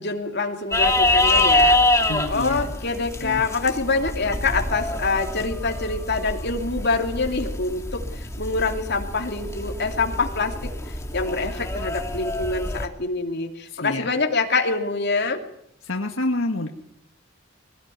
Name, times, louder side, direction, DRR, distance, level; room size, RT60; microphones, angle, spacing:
voice 1, 0.0-10.7 11.1-15.4, left 3 dB, 55° left, 3 dB, 3.0 m, -25 dB
sound 1, 0.7-12.9, left 2 dB, 15° left, 2.1 m, -25 dB
voice 2, 2.1-2.7 3.2-3.4 13.7-14.1 15.8-16.7, left 1 dB, 75° left, 3 dB, 1.8 m, -28 dB
21.5 x 18.5 x 9.4 m, 0.74 s
head